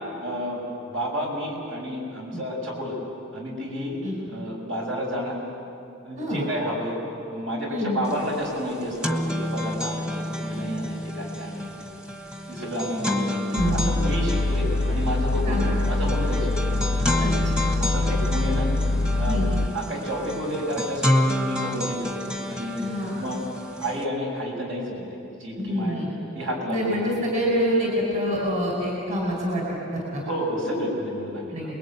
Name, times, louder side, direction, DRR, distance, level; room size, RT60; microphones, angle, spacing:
voice 1, 0.2-3.0 3.3-4.0 4.3-5.4 6.0-7.0 7.3-11.9 12.5-13.4 13.7-15.6 15.9-16.8 17.8-18.7 19.2-19.4 19.7-22.2 22.4-23.4 23.8-26.1 26.3-26.8 30.2-31.7, equal, 65° right, -1 dB, 6.9 m, -31 dB
voice 2, 4.0-4.4 6.1-6.4 7.7-8.0 13.5-14.0 15.5-15.8 17.2-17.7 19.2-19.6 22.8-23.2 25.6-26.1 26.7-29.6 29.9-30.2 30.6-30.9 31.5-31.7, equal, 35° right, -2 dB, 4.8 m, -27 dB
sound 1, 8.1-8.2 8.5-24.0, left 1 dB, 5° right, 1.3 m, -29 dB
sound 2, 13.6-19.7, left 2 dB, 65° left, 0.6 m, -24 dB
29.0 x 21.5 x 9.4 m, 2.9 s
head